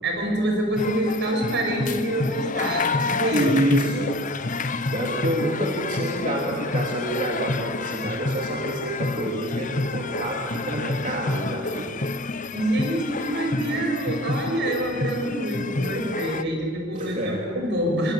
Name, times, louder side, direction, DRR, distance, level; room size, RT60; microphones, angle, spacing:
voice 1, 0.0-3.5 12.5-18.1, right 1 dB, 50° right, 2 dB, 7.1 m, -26 dB
sound 1, 0.8-16.4, left 3 dB, 35° left, 0.8 m, -29 dB
voice 2, 3.3-4.1 4.9-11.9 16.9-17.4, right 1 dB, 35° right, -2 dB, 3.1 m, -27 dB
29.5 x 24.5 x 8.2 m, 2.1 s
head